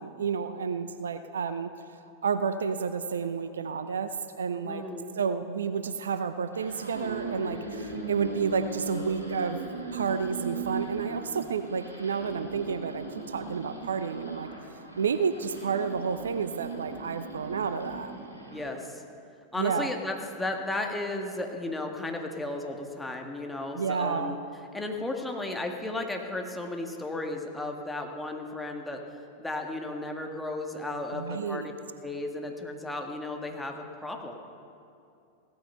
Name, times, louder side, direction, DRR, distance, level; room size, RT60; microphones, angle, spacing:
voice 1, 0.0-1.7 2.2-4.8 5.2-9.6 9.9-14.5 15.0-18.1 19.6-19.9 23.8-24.4 31.1-31.7, right 6 dB, 70° right, 11 dB, 0.6 m, -30 dB
voice 2, 4.6-5.1 18.5-19.0 19.5-24.4 24.7-29.0 29.4-31.7 32.0-34.3, left 2 dB, 5° left, 2 dB, 1.7 m, -34 dB
sound 1, 6.4-18.7, right 4 dB, 85° right, 4.4 m, -38 dB
17.0 x 13.0 x 5.6 m, 2.5 s
figure-of-eight pair, 90°, 0 cm